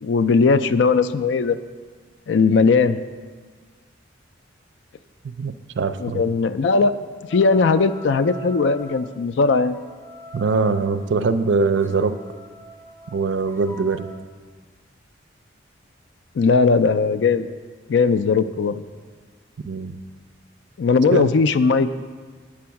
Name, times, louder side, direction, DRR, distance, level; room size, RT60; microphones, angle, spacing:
voice 1, 0.0-1.6 2.3-3.0 6.0-6.9 7.3-9.8 16.4-17.5 17.9-18.8 20.8-21.9, left 4 dB, 65° left, 13 dB, 0.4 m, -18 dB
voice 2, 5.2-6.2 10.3-12.2 13.1-14.1 19.6-20.0 21.1-21.3, right 4 dB, 70° right, 11 dB, 0.4 m, -22 dB
sound 1, 7.3-9.0 9.7-14.2, equal, 10° left, 0.5 m, -42 dB
8.6 x 6.2 x 5.7 m, 1.5 s
head